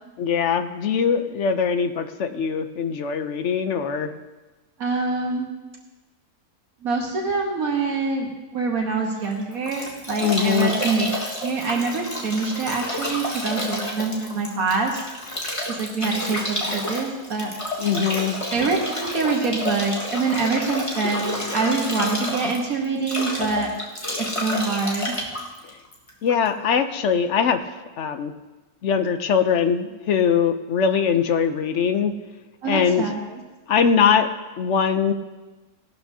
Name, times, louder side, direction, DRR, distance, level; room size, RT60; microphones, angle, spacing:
voice 1, 0.2-4.1 10.2-10.7 17.8-18.4 26.2-27.6 28.0-28.3 28.8-32.1 32.6-33.1 33.7-34.3 34.6-35.1, left 7 dB, 60° left, 9 dB, 0.9 m, -21 dB
voice 2, 4.8-5.5 6.8-11.1 11.4-15.0 15.8-17.5 18.5-23.7 24.2-25.2 32.6-33.2, right 4 dB, 75° right, 1 dB, 1.7 m, -25 dB
Bathtub (filling or washing) / Drip / Trickle dribble, 9.2-26.5, left 1 dB, 20° left, 1.6 m, -30 dB
17.5 x 12.0 x 2.7 m, 1.2 s
omnidirectional pair, 1.5 m